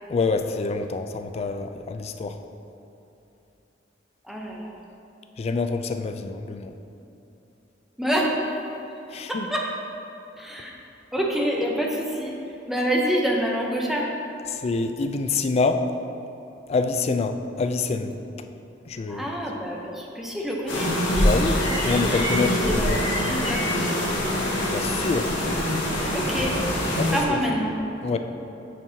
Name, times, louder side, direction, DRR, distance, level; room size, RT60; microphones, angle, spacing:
voice 1, 0.1-2.4 5.4-6.7 9.1-9.5 14.6-15.8 16.7-18.1 18.9-19.3 21.2-23.0 24.7-25.3 27.0-27.4 28.0-28.2, left 4 dB, 35° left, 7 dB, 0.3 m, -26 dB
voice 2, 4.2-4.8 8.0-8.3 9.3-9.7 10.4-10.7 11.1-12.3 12.7-14.1 19.1-20.9 22.2-23.7 26.1-26.5 26.8-27.8, equal, ahead, -2 dB, 0.7 m, -27 dB
sound 1, 20.7-27.2, left 1 dB, 80° left, 1.3 m, -24 dB
8.9 x 4.5 x 2.8 m, 3.0 s
head